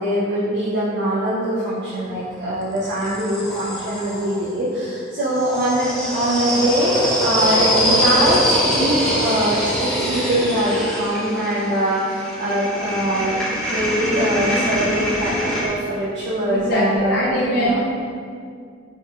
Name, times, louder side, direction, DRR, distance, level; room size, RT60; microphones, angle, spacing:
voice 1, 0.0-13.4 13.7-17.8, right 1 dB, 60° right, -9 dB, 0.6 m, -22 dB
sound 1, 2.0-4.4 5.3-15.7, equal, 5° left, 0.5 m, -23 dB
voice 2, 16.5-17.9, equal, 55° left, -7 dB, 0.5 m, -21 dB
4.4 x 2.3 x 3.0 m, 2.2 s
head